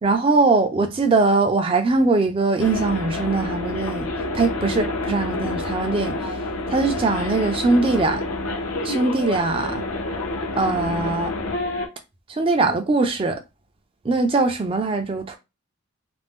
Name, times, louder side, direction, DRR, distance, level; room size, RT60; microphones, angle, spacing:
voice 1, 0.0-4.1 4.3-6.2 6.7-8.2 8.8-9.8 10.5-11.3 12.3-13.4 14.0-15.4, right 3 dB, 25° right, 0.3 m, -21 dB
sound 1, 2.6-11.9, left 2 dB, 80° left, 0.6 m, -28 dB
2.5 x 2.0 x 3.5 m
head